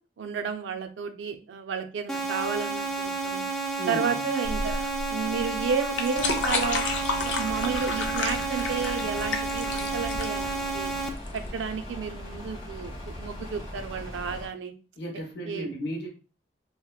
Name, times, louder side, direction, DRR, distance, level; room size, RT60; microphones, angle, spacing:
voice 1, 0.2-3.5 3.9-6.8 7.2-10.9 11.3-14.7 15.4-15.7, right 6 dB, 85° right, 8 dB, 0.4 m, -32 dB
sound 1, 2.1-11.1, right 3 dB, 5° left, 0.3 m, -31 dB
voice 2, 3.8-4.2 15.0-16.1, right 1 dB, 70° left, 0 dB, 0.8 m, -34 dB
sound 2, 4.4-11.5, left 3 dB, 90° left, 0.5 m, -31 dB
sound 3, 6.1-14.5, left 1 dB, 30° left, 0.8 m, -40 dB
2.8 x 2.1 x 2.2 m, 0.35 s
head